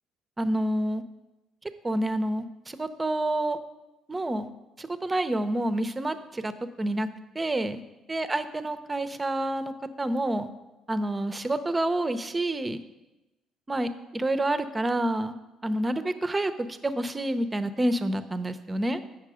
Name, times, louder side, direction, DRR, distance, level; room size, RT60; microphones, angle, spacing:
voice 1, 0.4-1.0 1.8-3.6 4.1-4.5 4.8-6.5 6.8-7.1 7.3-7.8 8.1-9.7 10.0-10.5 10.9-12.8 13.7-15.4 15.6-19.0, right 1 dB, 20° right, 10 dB, 0.7 m, -28 dB
8.3 x 6.1 x 5.0 m, 1.0 s
hypercardioid pair, 60°, 0 cm